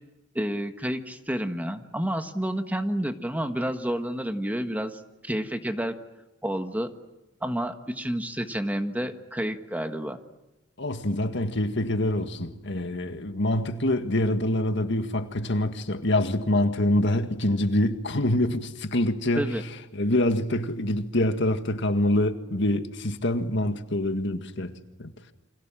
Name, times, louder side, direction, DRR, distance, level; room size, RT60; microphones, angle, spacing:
voice 1, 0.3-6.0 6.4-6.9 7.4-10.2 19.3-19.6, equal, 10° right, 1.4 m, -30 dB
voice 2, 10.8-19.5 20.0-24.7 25.0-25.1, left 1 dB, 65° left, 1.8 m, -25 dB
29.5 x 26.0 x 7.6 m
head